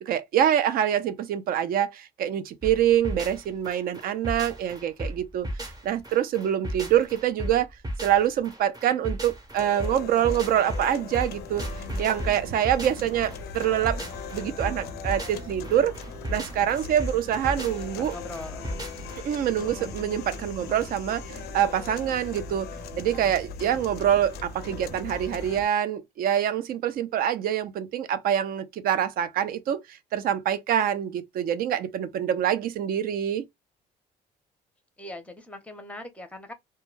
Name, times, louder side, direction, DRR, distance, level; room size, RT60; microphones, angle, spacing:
voice 1, 0.0-7.7 8.0-11.7 12.0-14.0 14.3-15.9 16.3-18.1 19.2-22.7 23.0-33.4, right 10 dB, 60° right, 0.4 m, -25 dB
sound 1, 2.6-19.2, right 1 dB, 20° right, 0.7 m, -35 dB
sound 2, 9.6-25.6, left 10 dB, 70° left, 0.4 m, -42 dB
sound 3, 11.3-25.6, right 1 dB, 80° right, 0.9 m, -42 dB
voice 2, 16.3-16.8 18.0-18.7 35.0-36.5, left 2 dB, 10° left, 0.6 m, -41 dB
2.2 x 2.2 x 3.1 m
cardioid pair, 110°, 17 cm